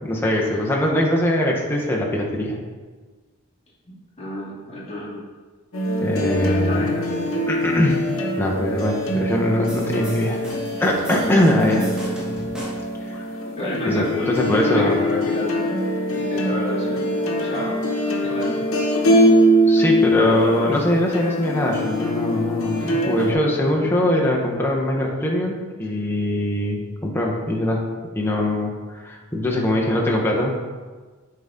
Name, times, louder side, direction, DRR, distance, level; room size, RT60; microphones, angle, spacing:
voice 1, 0.0-2.6 6.0-6.9 7.5-8.0 8.4-10.4 10.8-11.9 13.1-13.2 13.8-14.9 19.7-27.8 28.1-30.6, left 1 dB, 10° left, -2 dB, 1.0 m, -22 dB
voice 2, 4.2-5.2 6.4-7.5 13.6-15.6 16.1-17.7 18.2-18.7 20.1-20.8 22.8-23.0 23.6-24.0, left 1 dB, 30° left, -7 dB, 2.2 m, -31 dB
sound 1, 5.7-23.3, equal, 85° left, 1.0 m, -23 dB
sound 2, 9.7-13.0, equal, 5° right, 1.3 m, -37 dB
9.3 x 4.1 x 3.7 m, 1.4 s
head